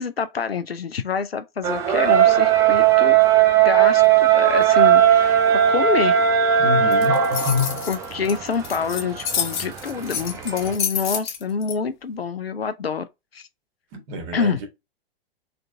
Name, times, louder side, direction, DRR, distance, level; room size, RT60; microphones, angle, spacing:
voice 1, 0.0-3.2 3.6-4.0 4.3-5.4 5.7-6.2 7.9-13.1 13.3-13.4 14.3-14.6, left 6 dB, 80° left, 0.7 m, -26 dB
sound 1, 1.6-10.8, right 9 dB, 10° right, 0.3 m, -18 dB
voice 2, 6.6-7.9 13.9-14.7, left 4 dB, 40° right, 1.8 m, -26 dB
sound 2, 6.9-11.7, left 7 dB, 55° left, 1.2 m, -28 dB
3.8 x 3.5 x 3.5 m
figure-of-eight pair, 110°, 30 cm